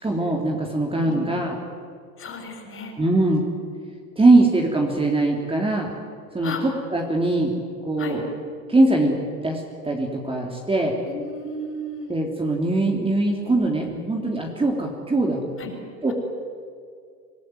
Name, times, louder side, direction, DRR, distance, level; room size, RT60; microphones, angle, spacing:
voice 1, 0.0-1.5 3.0-3.4 4.2-5.9 6.3-7.5 7.8-8.2 8.7-9.2 9.4-10.9 12.1-15.4 16.0-16.1, right 2 dB, 10° right, 0 dB, 3.6 m, -21 dB
voice 2, 2.2-2.9 6.4-6.6 8.0-8.2 11.0-12.1 15.6-15.7, left 2 dB, 25° left, 4 dB, 6.5 m, -33 dB
27.0 x 18.5 x 9.6 m, 2.3 s
hypercardioid pair, 90°, 48 cm